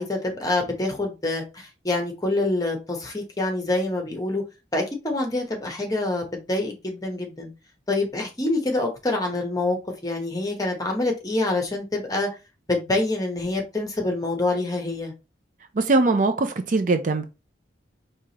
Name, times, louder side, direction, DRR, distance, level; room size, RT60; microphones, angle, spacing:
voice 1, 0.0-4.4 4.7-7.5 7.9-9.8 10.0-12.3 12.7-15.1, left 2 dB, 20° left, 0.9 m, -26 dB
voice 2, 15.7-17.2, right 3 dB, 45° right, 0.5 m, -21 dB
4.7 x 2.8 x 2.9 m
head